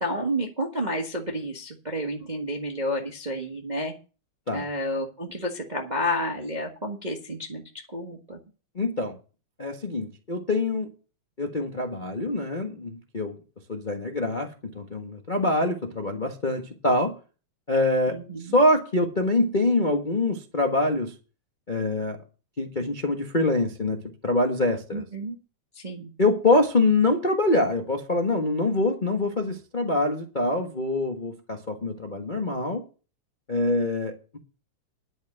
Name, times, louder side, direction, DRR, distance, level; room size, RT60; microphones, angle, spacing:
voice 1, 0.0-3.9 4.5-7.6 7.9-8.4 18.1-18.6 24.9-25.4 25.7-26.1, equal, 50° right, 2 dB, 0.5 m, -30 dB
voice 2, 8.7-9.2 9.6-10.9 11.4-13.3 13.7-17.1 17.7-18.2 18.5-21.1 21.7-22.2 22.6-25.0 26.2-32.8 33.5-34.4, left 2 dB, 85° left, 3 dB, 0.4 m, -25 dB
11.0 x 6.3 x 7.7 m, 0.36 s
omnidirectional pair, 3.5 m